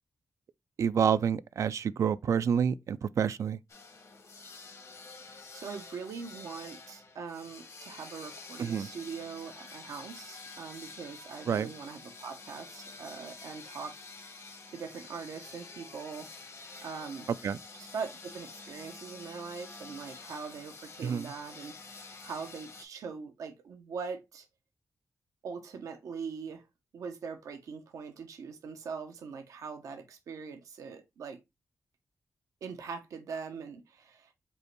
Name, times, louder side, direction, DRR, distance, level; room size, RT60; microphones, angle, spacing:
voice 1, 0.8-3.6 8.6-8.9 11.5-11.7 17.4-17.6 21.0-21.3, right 7 dB, 70° right, 0.3 m, -28 dB
sound 1, 3.7-22.8, left 4 dB, 60° left, 1.1 m, -48 dB
voice 2, 5.2-13.9 14.7-16.3 16.8-17.3 17.7-24.5 25.4-26.6 26.9-31.4 32.6-34.3, right 5 dB, 90° right, 0.7 m, -42 dB
5.3 x 2.2 x 4.5 m
cardioid pair, 70°, 5 cm